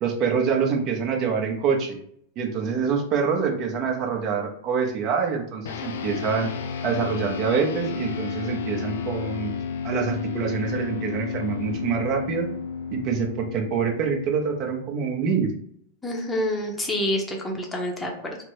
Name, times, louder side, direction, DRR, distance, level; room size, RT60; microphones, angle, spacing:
voice 1, 0.0-2.0 2.4-6.5 6.8-9.5 9.8-12.5 12.9-15.5, right 6 dB, 40° right, 2 dB, 0.7 m, -25 dB
sound 1, 5.6-15.3, left 6 dB, 75° left, 0.4 m, -32 dB
voice 2, 16.0-18.4, left 1 dB, 10° left, 1 dB, 0.7 m, -27 dB
3.3 x 2.0 x 3.0 m, 0.66 s
hypercardioid pair, 115°, 0 cm